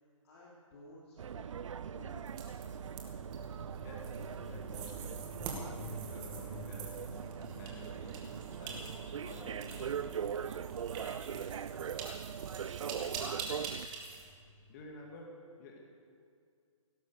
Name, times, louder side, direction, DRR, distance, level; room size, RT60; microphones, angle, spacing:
voice 1, 0.2-1.5 1.8-2.3 12.8-13.3, left 1 dB, 50° left, -5 dB, 3.2 m, -54 dB
sound 1, 1.2-13.9, right 8 dB, 65° right, 0.5 m, -41 dB
sound 2, 2.3-14.3, right 5 dB, 25° right, 2.3 m, -46 dB
Truck, 2.5-14.8, equal, 5° right, 5.2 m, -52 dB
voice 2, 3.8-5.2 6.1-7.0 7.5-10.6 14.7-15.8, left 1 dB, 35° left, 0 dB, 2.3 m, -51 dB
17.5 x 11.5 x 6.8 m, 2.3 s
figure-of-eight pair, 140°, 17 cm